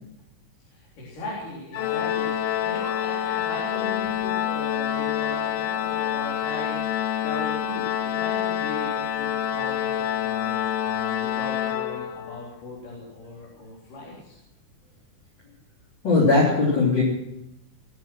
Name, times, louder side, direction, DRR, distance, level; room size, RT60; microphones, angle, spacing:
voice 1, 0.7-14.4, left 1 dB, 85° left, -5 dB, 5.5 m, -39 dB
Organ, 1.7-12.5, left 10 dB, 70° left, 1.5 m, -27 dB
voice 2, 16.0-17.0, left 3 dB, 35° left, -5 dB, 4.0 m, -19 dB
22.0 x 10.5 x 6.3 m, 0.86 s
omnidirectional pair, 3.6 m